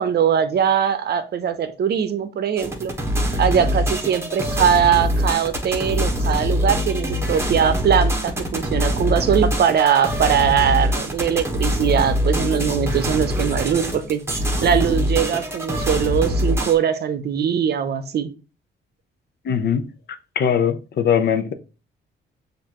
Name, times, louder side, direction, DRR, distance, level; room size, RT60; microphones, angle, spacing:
voice 1, 0.0-2.9 3.4-14.2 14.6-18.3, right 8 dB, 55° right, 0.7 m, -21 dB
sound 1, 2.6-16.8, equal, 15° right, 1.2 m, -23 dB
voice 2, 19.4-19.9 20.4-21.5, left 8 dB, 55° left, 0.7 m, -20 dB
6.5 x 2.6 x 3.0 m
cardioid pair, 90°, 20 cm